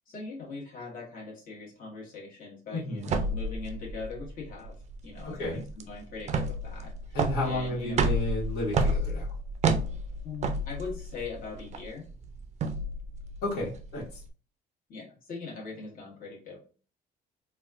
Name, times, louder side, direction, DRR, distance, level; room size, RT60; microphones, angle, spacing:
voice 1, 0.1-4.7 5.0-8.0 10.2-12.1 14.9-16.6, left 4 dB, 55° left, -3 dB, 1.4 m, -41 dB
voice 2, 2.7-3.1 5.4-5.6 7.1-9.3 13.4-14.2, left 1 dB, 75° left, -5 dB, 1.4 m, -32 dB
sound 1, 3.0-14.3, right 2 dB, 40° right, 0.4 m, -31 dB
4.0 x 2.3 x 2.4 m, 0.38 s
cardioid pair, 110°, 17 cm